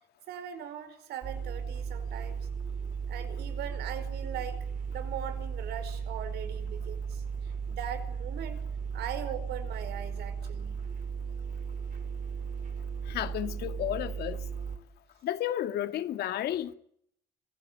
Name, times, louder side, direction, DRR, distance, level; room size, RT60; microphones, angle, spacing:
voice 1, 0.3-2.5 3.1-4.6 4.9-8.6 8.9-10.8, right 9 dB, 75° right, 4.9 m, -40 dB
sound 1, 1.2-14.8, right 6 dB, 50° right, 5.0 m, -36 dB
voice 2, 13.1-14.4 15.2-16.7, left 12 dB, 70° left, 2.1 m, -32 dB
25.5 x 17.5 x 9.1 m
cardioid pair, 110°, 17 cm